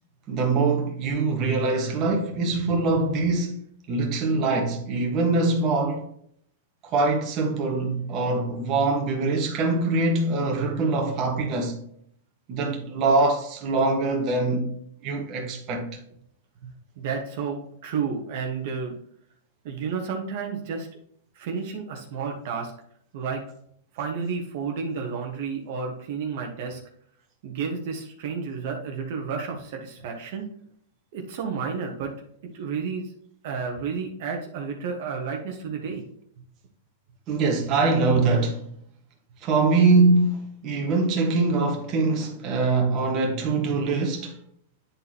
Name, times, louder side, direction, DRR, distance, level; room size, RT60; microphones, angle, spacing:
voice 1, 0.3-6.1 6.8-11.8 12.5-14.7 15.0-15.9 37.3-38.6 39.4-44.4, right 3 dB, 40° right, 1.4 m, -23 dB
voice 2, 16.6-18.9 19.6-20.9 21.3-22.7 23.1-23.4 23.9-26.8 27.4-30.5 31.1-32.1 32.5-33.1 33.4-36.0, right 5 dB, 60° right, 1.3 m, -31 dB
9.7 x 4.2 x 2.9 m
hypercardioid pair, 120°, 0 cm